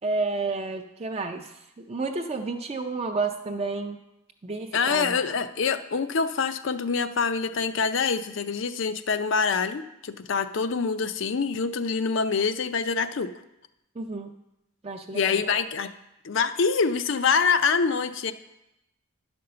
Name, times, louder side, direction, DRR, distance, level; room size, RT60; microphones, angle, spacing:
voice 1, 0.0-1.5 1.9-4.0 4.4-5.2 14.0-14.3 14.8-15.4, right 3 dB, 30° right, 5 dB, 0.4 m, -30 dB
voice 2, 4.7-13.3 15.1-15.9 16.2-18.3, left 5 dB, 60° left, 11 dB, 0.5 m, -25 dB
10.5 x 5.2 x 6.8 m, 0.90 s
head